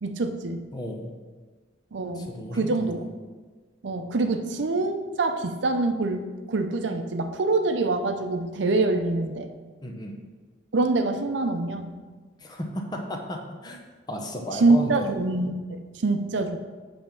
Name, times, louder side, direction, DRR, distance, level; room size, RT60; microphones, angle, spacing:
voice 1, 0.0-0.7 1.9-3.1 3.8-9.5 10.7-12.0 14.5-16.6, right 3 dB, 80° right, 7 dB, 0.6 m, -25 dB
voice 2, 0.7-1.1 2.1-3.1 9.8-10.1 12.4-13.8 14.1-15.1, left 1 dB, 20° left, 2 dB, 0.7 m, -34 dB
7.5 x 3.5 x 5.8 m, 1.4 s
head